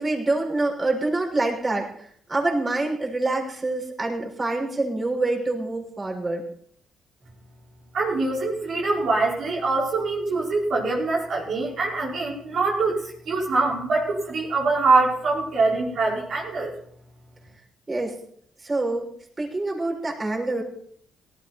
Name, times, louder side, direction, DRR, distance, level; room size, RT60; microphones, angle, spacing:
voice 1, 0.0-6.4 17.9-18.2 18.6-19.1 19.4-20.6, right 2 dB, 25° right, -1 dB, 6.2 m, -26 dB
voice 2, 7.9-13.0 13.2-16.7, right 3 dB, 60° right, -4 dB, 5.1 m, -23 dB
18.0 x 14.0 x 4.4 m, 0.63 s
cardioid pair, 90°, 0 cm